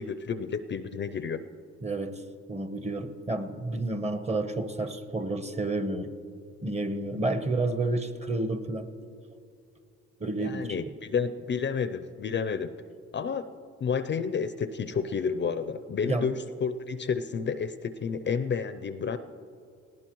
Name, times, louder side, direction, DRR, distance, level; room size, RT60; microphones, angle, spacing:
voice 1, 0.0-1.4 10.4-12.7 13.1-13.4 13.8-19.2, left 6 dB, 40° left, 11 dB, 0.5 m, -30 dB
voice 2, 1.8-2.2 2.5-6.1 6.6-8.9 10.2-10.9 16.1-16.3, right 2 dB, 20° right, 9 dB, 0.9 m, -30 dB
19.5 x 15.5 x 3.1 m, 2.4 s
cardioid pair, 90°, 30 cm